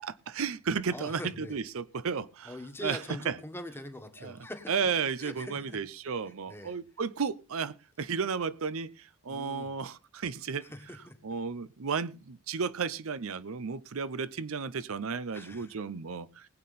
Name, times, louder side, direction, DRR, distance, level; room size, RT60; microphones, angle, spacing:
voice 1, 0.0-2.5 2.8-3.0 3.3-3.4 4.2-4.4 4.7-10.7 11.2-16.5, right 5 dB, 65° right, 0.6 m, -33 dB
voice 2, 0.9-1.6 2.4-4.8 5.2-5.8 6.3-6.8 9.3-9.7 10.6-11.2 15.3-15.8, left 1 dB, 10° left, 1.5 m, -43 dB
19.5 x 8.5 x 4.1 m
head